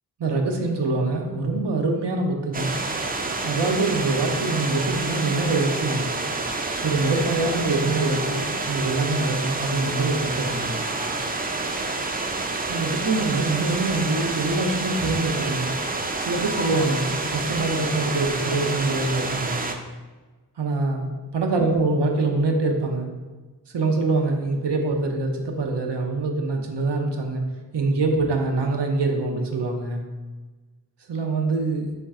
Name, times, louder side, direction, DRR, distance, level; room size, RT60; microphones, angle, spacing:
voice 1, 0.2-2.7 3.4-6.1 6.8-10.8 12.7-15.8 16.2-19.6 20.6-23.1 23.7-27.4 27.7-30.0 31.1-31.9, right 3 dB, 90° right, 3 dB, 0.6 m, -24 dB
sound 1, 2.5-19.7, right 3 dB, 25° right, 0.4 m, -28 dB
4.4 x 3.2 x 3.6 m, 1.3 s
wide cardioid pair, 45°, 41 cm